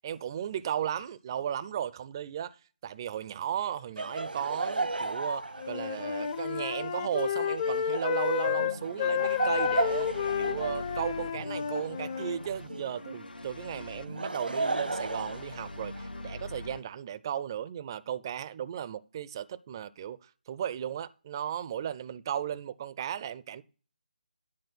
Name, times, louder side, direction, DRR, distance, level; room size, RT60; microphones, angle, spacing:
voice 1, 0.0-2.6 2.8-10.1 10.4-23.6, right 9 dB, 25° right, 0.4 m, -35 dB
Laughter, 4.0-13.0 13.9-16.2, right 3 dB, 80° right, 0.9 m, -35 dB
Wind instrument woodwind instrument, 5.6-12.4, left 9 dB, 30° left, 0.5 m, -31 dB
sound 1, 8.6-16.8, left 2 dB, 70° left, 0.7 m, -43 dB
10.5 x 4.3 x 6.1 m
figure-of-eight pair, 150°, 5 cm